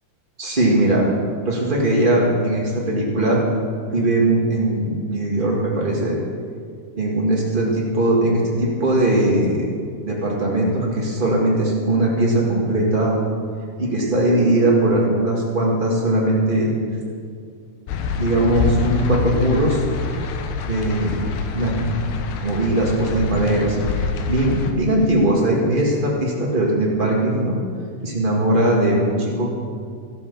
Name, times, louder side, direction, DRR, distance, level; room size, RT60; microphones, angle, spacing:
voice 1, 0.4-1.1 1.4-3.4 3.9-6.2 7.0-9.7 10.1-13.1 13.8-16.7 18.2-19.8 20.7-21.2 21.5-21.9 22.4-27.6 28.0-29.5, right 1 dB, 65° right, -3 dB, 0.5 m, -20 dB
sound 1, 17.9-24.7, left 4 dB, 80° left, 3.1 m, -26 dB
13.5 x 12.5 x 6.9 m, 2.2 s
omnidirectional pair, 4.5 m